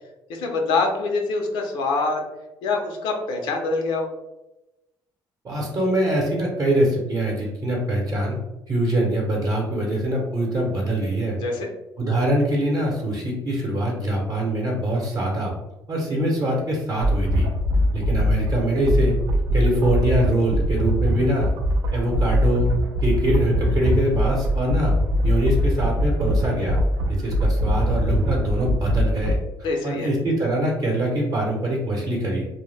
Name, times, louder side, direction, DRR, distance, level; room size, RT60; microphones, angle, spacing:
voice 1, 0.3-2.2 2.6-4.1 11.4-11.7 29.6-30.1, left 3 dB, 85° left, 2 dB, 0.5 m, -24 dB
voice 2, 5.4-8.4 8.7-11.4 12.0-15.5 15.9-17.5 17.9-19.1 19.5-21.5 21.9-22.7 23.0-25.0 25.2-26.8 27.2-29.4 29.8-32.4, right 1 dB, 45° right, -2 dB, 0.7 m, -23 dB
sound 1, 17.0-29.3, equal, 85° right, 0.4 m, -22 dB
2.1 x 2.0 x 3.3 m, 0.95 s
cardioid pair, 105°, 8 cm